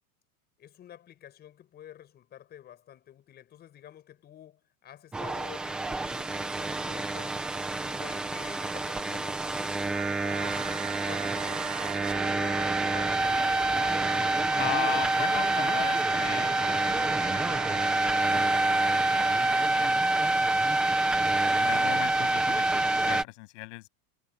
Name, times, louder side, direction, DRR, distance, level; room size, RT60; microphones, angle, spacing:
voice 1, 0.6-7.4 7.7-10.6 11.0-13.5, left 11 dB, 20° left, 6.3 m, -49 dB
sound 1, 5.1-23.2, right 2 dB, ahead, 0.4 m, -27 dB
sound 2, 9.9-19.7, right 15 dB, 85° right, 5.9 m, -38 dB
voice 2, 14.5-20.6 21.6-23.9, left 22 dB, 50° left, 7.3 m, -39 dB
supercardioid pair, 175°, 46 cm